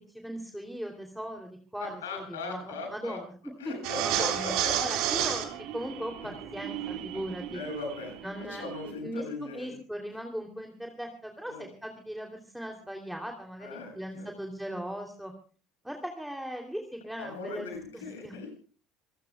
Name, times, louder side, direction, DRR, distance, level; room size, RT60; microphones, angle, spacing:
voice 1, 0.0-3.3 3.6-3.7 4.0-4.5 4.8-7.6 8.2-11.5 11.8-15.3 15.8-18.3, equal, ahead, 3 dB, 3.0 m, -39 dB
voice 2, 1.8-3.2 3.6-4.7 7.5-9.8 11.5-11.7 13.6-14.3 17.2-18.5, left 3 dB, 85° left, 3 dB, 7.4 m, -39 dB
sound 1, 3.8-8.9, right 11 dB, 65° right, 4.2 m, -32 dB
27.5 x 18.0 x 2.3 m, 0.41 s
hypercardioid pair, 70°, 0 cm